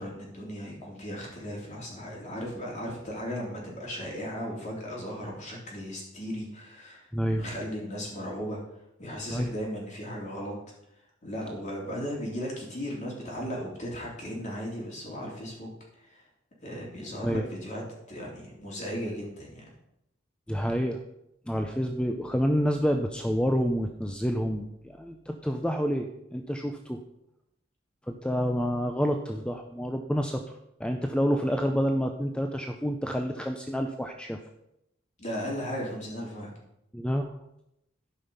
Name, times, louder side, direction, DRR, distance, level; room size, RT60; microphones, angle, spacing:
voice 1, 0.0-8.6 9.0-10.5 11.2-16.2 16.6-17.8 18.1-19.7 35.2-36.5, equal, 40° left, -3 dB, 3.4 m, -36 dB
voice 2, 7.1-7.4 9.3-9.5 17.2-17.4 20.5-21.0 21.5-27.0 28.1-30.4 30.8-34.4 36.9-37.3, equal, 5° left, 4 dB, 0.5 m, -28 dB
12.0 x 5.6 x 5.6 m, 0.83 s
head